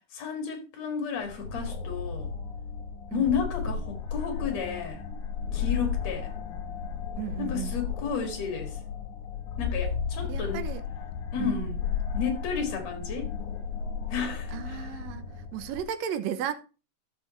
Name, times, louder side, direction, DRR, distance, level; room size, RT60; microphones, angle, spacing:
voice 1, 0.1-2.3 3.1-5.0 5.5-6.3 7.4-8.8 9.6-10.6 11.3-11.8 12.1-13.3 14.1-14.8, left 6 dB, 60° left, 3.2 m, -32 dB
sound 1, 1.2-15.8, left 6 dB, 75° left, 2.6 m, -34 dB
voice 2, 7.2-7.8 10.3-10.8 11.4-11.8 14.5-16.5, right 10 dB, 70° right, 2.0 m, -34 dB
13.5 x 6.7 x 3.1 m
omnidirectional pair, 3.5 m